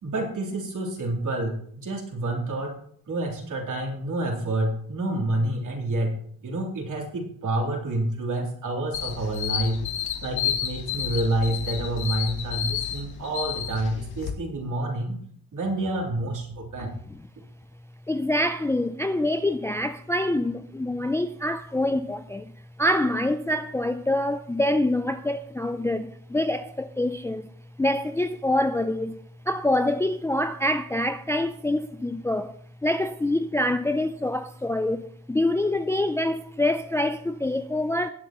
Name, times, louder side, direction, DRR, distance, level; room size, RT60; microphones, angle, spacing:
voice 1, 0.0-2.7 3.1-6.1 6.4-9.8 10.2-15.2 15.5-16.9, right 1 dB, 55° right, 3.4 m, -28 dB
sound 1, 8.9-14.3, left 9 dB, 80° left, 1.4 m, -31 dB
voice 2, 18.1-22.5 22.8-27.5 27.8-29.2 29.5-32.6 32.8-38.1, left 1 dB, 5° left, 0.4 m, -25 dB
19.5 x 7.8 x 3.0 m
cardioid pair, 100°, 37 cm